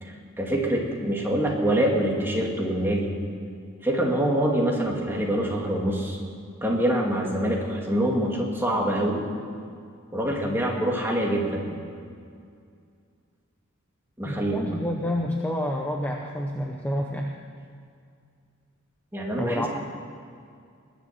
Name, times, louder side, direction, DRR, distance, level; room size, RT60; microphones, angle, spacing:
voice 1, 0.0-3.1 3.8-6.2 6.6-9.2 10.1-11.7 14.2-14.8 19.1-19.6, right 1 dB, 10° right, -1 dB, 2.1 m, -25 dB
voice 2, 14.2-17.3 19.4-19.7, left 1 dB, 10° left, 0 dB, 0.8 m, -28 dB
20.5 x 7.3 x 7.4 m, 2.3 s
head